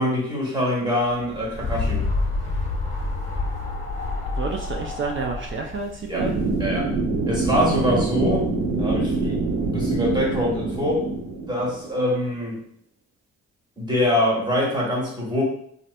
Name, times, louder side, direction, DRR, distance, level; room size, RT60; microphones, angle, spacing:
voice 1, 0.0-2.0 6.1-6.2 6.6-6.9 7.3-8.4 8.8-11.0 11.5-12.6 13.8-15.4, left 1 dB, 15° right, -5 dB, 1.3 m, -24 dB
sound 1, 1.1-6.7, left 3 dB, 25° left, 1.1 m, -28 dB
voice 2, 4.3-6.4, right 4 dB, 40° right, 1 dB, 0.4 m, -30 dB
sound 2, 6.2-12.1, right 3 dB, 75° right, 0.8 m, -25 dB
2.8 x 2.5 x 3.2 m, 0.68 s
cardioid pair, 90°, 30 cm